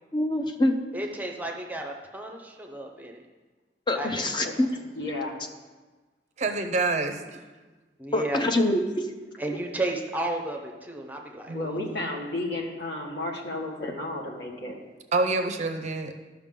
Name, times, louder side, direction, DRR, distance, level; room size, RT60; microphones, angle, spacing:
voice 1, 0.1-0.7 3.9-4.7 8.1-9.1 13.8-13.9, left 1 dB, 25° left, 5 dB, 0.7 m, -25 dB
voice 2, 0.9-3.2 3.9-4.5 8.0-8.4 9.4-11.8, right 1 dB, 10° right, 1 dB, 0.8 m, -33 dB
voice 3, 5.0-5.4 11.5-14.7, left 2 dB, 65° left, -1 dB, 1.5 m, -32 dB
voice 4, 6.4-7.2 11.5-12.1 15.1-16.1, right 3 dB, 40° right, 7 dB, 0.5 m, -27 dB
12.5 x 5.7 x 3.7 m, 1.3 s
head